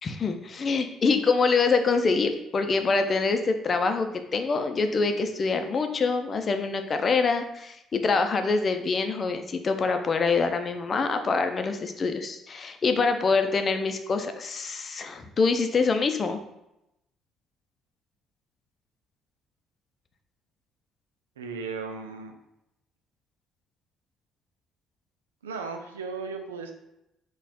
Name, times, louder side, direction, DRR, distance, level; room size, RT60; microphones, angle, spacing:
voice 1, 0.0-16.4, left 4 dB, 45° left, 7 dB, 0.5 m, -25 dB
voice 2, 21.4-22.4 25.4-26.7, right 4 dB, 90° right, 5 dB, 0.4 m, -36 dB
4.1 x 2.4 x 4.1 m, 0.86 s
hypercardioid pair, 50°, 0 cm